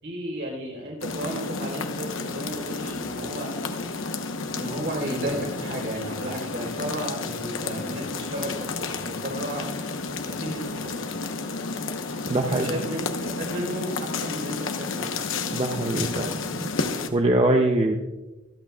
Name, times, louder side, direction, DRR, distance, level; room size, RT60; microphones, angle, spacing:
voice 1, 0.0-3.6 4.5-9.7 10.2-11.1 12.5-15.1, right 1 dB, 60° right, -1 dB, 4.2 m, -33 dB
sound 1, 1.0-17.1, left 4 dB, 75° left, 1.0 m, -31 dB
voice 2, 12.3-12.7 15.5-16.4 17.1-17.9, right 1 dB, 30° right, 4 dB, 0.6 m, -22 dB
25.0 x 8.7 x 2.4 m, 1.1 s
head